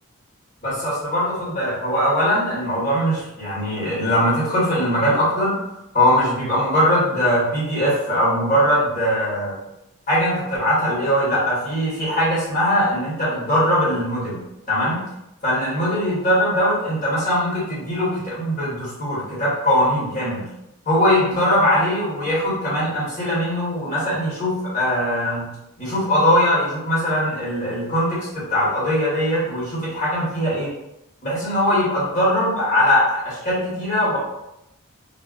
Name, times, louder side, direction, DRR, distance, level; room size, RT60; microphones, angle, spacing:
voice 1, 0.6-5.6 5.9-9.6 10.1-14.4 14.7-15.0 15.4-20.4 20.8-25.5 25.8-30.7 31.2-34.2, equal, 40° left, -8 dB, 1.2 m, -21 dB
2.2 x 2.1 x 3.7 m, 0.85 s
head